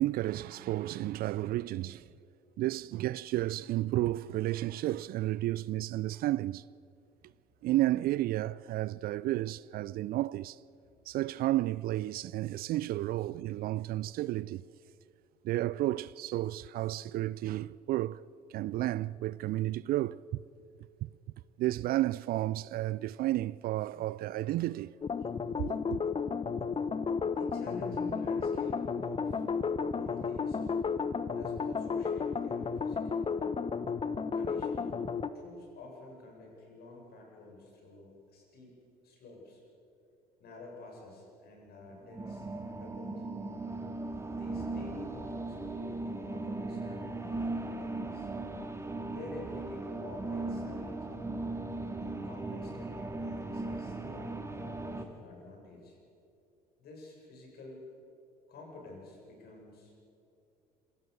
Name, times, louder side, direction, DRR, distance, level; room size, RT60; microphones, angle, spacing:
voice 1, 0.0-2.1 2.6-6.6 7.6-10.6 11.1-14.6 15.4-18.2 18.5-20.2 21.0-21.1 21.6-24.9 25.7-26.0, right 15 dB, 50° right, 0.5 m, -32 dB
sound 1, 25.0-35.3, left 5 dB, 30° left, 1.1 m, -33 dB
voice 2, 27.4-30.6 31.3-33.3 34.3-35.0 35.3-39.6 40.4-43.3 44.3-48.3 49.1-51.3 52.0-56.0 56.8-57.8 58.5-59.9, left 2 dB, 55° left, 7.8 m, -49 dB
sound 2, 41.9-55.0, right 2 dB, 15° right, 2.2 m, -38 dB
sound 3, 46.1-55.0, left 2 dB, 85° left, 3.9 m, -60 dB
26.5 x 17.0 x 7.1 m
figure-of-eight pair, 60°, 20 cm